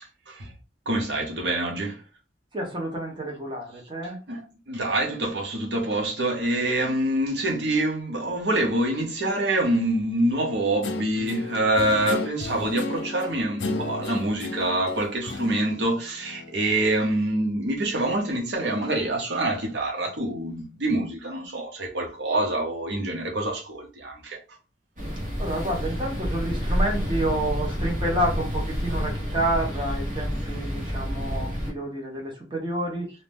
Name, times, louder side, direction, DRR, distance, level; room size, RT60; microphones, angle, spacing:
voice 1, 0.9-2.0 4.0-24.4, right 1 dB, 70° right, 0.8 m, -26 dB
voice 2, 2.5-4.2 25.4-33.1, right 1 dB, 25° right, 0.9 m, -29 dB
Guitar, 10.8-16.6, left 2 dB, 90° left, 0.5 m, -34 dB
sound 1, 25.0-31.7, equal, 50° right, 1.1 m, -29 dB
2.7 x 2.1 x 3.3 m
head